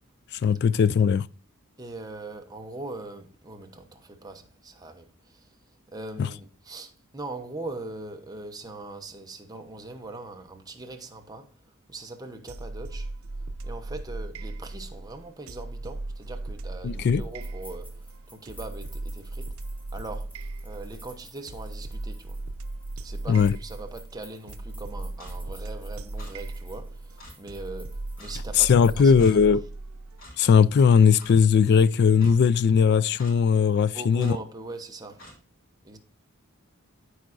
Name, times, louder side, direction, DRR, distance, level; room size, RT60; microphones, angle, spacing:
voice 1, 0.4-1.3 6.2-6.3 16.8-17.2 23.3-23.5 28.6-29.6 30.4-34.4, left 6 dB, 50° left, 0.3 m, -19 dB
voice 2, 1.8-5.5 5.9-11.6 11.9-13.1 13.6-19.5 19.9-22.4 23.0-29.1 29.5-29.6 33.8-35.3 35.8-36.0, right 2 dB, 20° right, 0.9 m, -41 dB
sound 1, 12.5-30.2, right 2 dB, 85° right, 0.6 m, -37 dB
sound 2, 17.2-29.3, equal, 10° left, 1.7 m, -54 dB
Clock, 25.2-25.4 26.2-26.3 27.2-27.3 28.2-28.4 29.2-29.3 30.2-30.4 31.2-31.3 32.2-32.3 33.2-33.4 34.2-34.4 35.2-35.4, left 1 dB, 70° left, 3.2 m, -46 dB
13.5 x 4.8 x 2.5 m
head